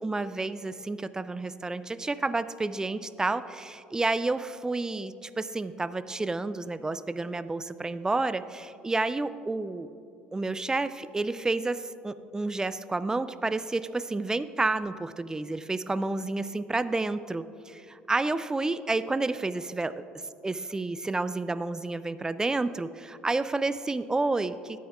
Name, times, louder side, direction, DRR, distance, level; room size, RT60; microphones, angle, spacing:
voice 1, 0.0-9.9 10.3-19.9 20.4-24.8, right 3 dB, 15° right, 14 dB, 0.3 m, -30 dB
12.5 x 9.2 x 2.4 m, 2.7 s
figure-of-eight pair, 60°, 5 cm